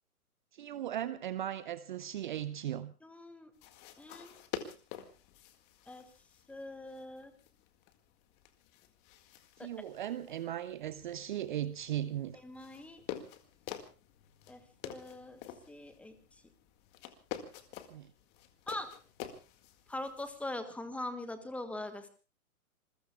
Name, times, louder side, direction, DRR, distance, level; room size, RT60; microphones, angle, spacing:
voice 1, 0.5-2.9 9.6-12.4 17.9-18.1, right 11 dB, 35° right, 0.7 m, -37 dB
voice 2, 3.0-3.5 4.0-4.4 5.9-6.0 6.5-7.3 9.6-9.7 12.3-13.0 14.5-15.4 15.7-16.2 18.7-18.9 19.9-22.1, left 1 dB, 5° left, 1.4 m, -42 dB
sound 1, 3.5-20.6, left 10 dB, 25° left, 1.9 m, -49 dB
27.5 x 21.5 x 2.3 m
figure-of-eight pair, 125°, 44 cm